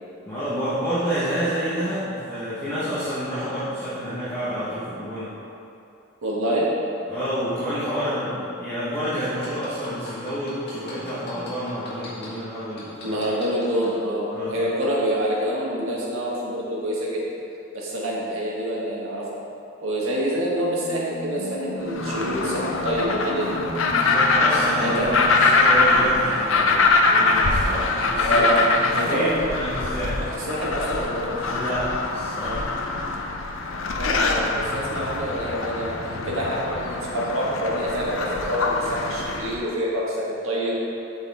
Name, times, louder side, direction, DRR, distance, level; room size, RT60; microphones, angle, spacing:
voice 1, 0.3-5.3 7.1-13.2 14.3-14.6 23.9-28.5 28.8-30.2 31.5-32.8, equal, 10° left, -14 dB, 1.3 m, -29 dB
voice 2, 6.2-6.7 13.0-17.3 17.7-19.3 19.8-23.5 24.8-25.1 28.2-28.6 28.9-29.3 30.3-31.6 34.0-40.7, equal, 75° right, -5 dB, 1.7 m, -26 dB
sound 1, 9.0-12.3 12.8-13.9 14.4-14.5, left 3 dB, 50° left, 1.7 m, -40 dB
sound 2, 20.5-25.6, left 1 dB, 85° left, 1.4 m, -35 dB
Pinguin Colony at Gourdin Island in the Antarctica Peninsula, 21.9-39.6, left 3 dB, 65° left, 0.6 m, -23 dB
8.0 x 6.4 x 3.6 m, 2.8 s
head